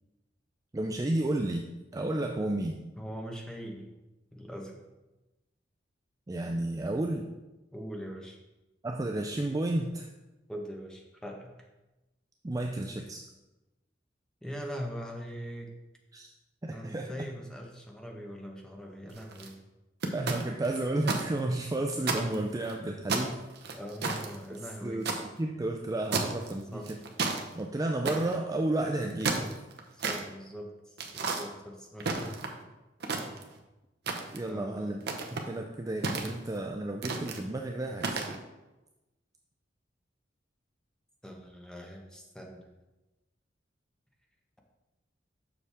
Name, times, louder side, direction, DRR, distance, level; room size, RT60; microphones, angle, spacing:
voice 1, 0.7-1.6 1.9-2.8 6.3-7.3 8.8-10.1 12.4-13.2 16.1-16.3 16.6-17.1 20.1-23.4 24.8-25.1 25.4-26.8 27.5-29.5 34.3-35.0 35.3-38.3, right 1 dB, 20° right, 3 dB, 0.4 m, -32 dB
voice 2, 3.0-3.9 4.3-4.8 7.7-8.4 10.5-11.7 14.4-15.8 16.7-19.6 23.7-25.1 26.7-27.0 29.9-32.4 34.5-35.0 41.2-42.7, equal, 5° left, 1 dB, 0.9 m, -42 dB
sound 1, 19.1-19.5 20.0-21.2 21.6-21.7 22.0-22.7 23.1-25.2 26.1-26.5 26.8-27.4 28.0-28.4 29.0-30.2 31.0-31.4 32.0-32.6 33.0-33.6 34.1-34.5 35.0-35.5 36.0-36.6 37.0-37.4 38.0-38.4, right 3 dB, 60° right, 0.8 m, -32 dB
7.1 x 6.2 x 3.4 m, 1.0 s
head